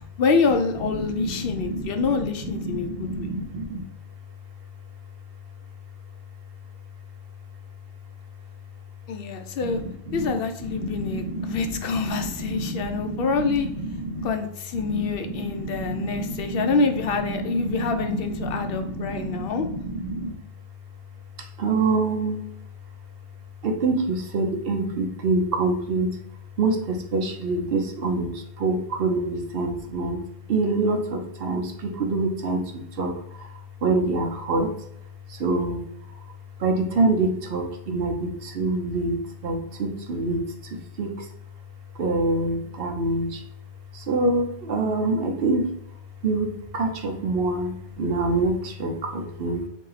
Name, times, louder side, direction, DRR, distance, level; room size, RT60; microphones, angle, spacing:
voice 1, 0.0-3.3 9.1-9.8 10.1-13.7 14.2-19.7, left 4 dB, 70° left, 6 dB, 0.7 m, -26 dB
voice 2, 0.8-3.8 9.6-14.3 14.7-20.3 21.4-22.5 23.6-26.2 26.6-30.2 30.5-34.7 35.3-36.2 36.6-41.3 41.9-43.4 43.9-45.7 46.2-49.7, right 2 dB, 70° right, 3 dB, 0.9 m, -27 dB
3.8 x 2.8 x 3.9 m, 0.70 s
omnidirectional pair, 1.0 m